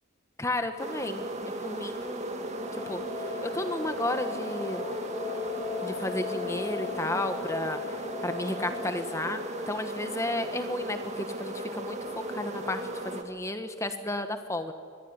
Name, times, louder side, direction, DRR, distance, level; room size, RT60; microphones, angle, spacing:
voice 1, 0.4-1.2 1.6-2.3 2.7-4.9 5.8-14.7, left 1 dB, 15° left, 8 dB, 1.2 m, -33 dB
sound 1, 0.8-13.2, right 1 dB, 30° right, 2.3 m, -36 dB
sound 2, 2.5-9.2, left 6 dB, 35° left, 6.5 m, -38 dB
25.5 x 21.5 x 9.7 m, 2.1 s
head